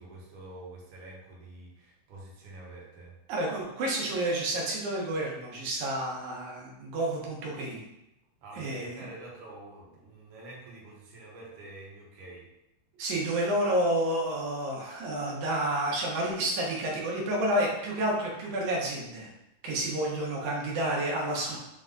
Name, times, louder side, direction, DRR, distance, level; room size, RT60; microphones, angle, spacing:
voice 1, 0.0-3.1 8.4-12.5 21.4-21.6, right 2 dB, 60° right, -4 dB, 1.4 m, -47 dB
voice 2, 3.3-7.8 8.6-9.1 13.0-19.3 19.6-21.6, right 1 dB, 85° right, -2 dB, 2.3 m, -30 dB
5.2 x 2.2 x 3.7 m, 0.89 s
omnidirectional pair, 3.4 m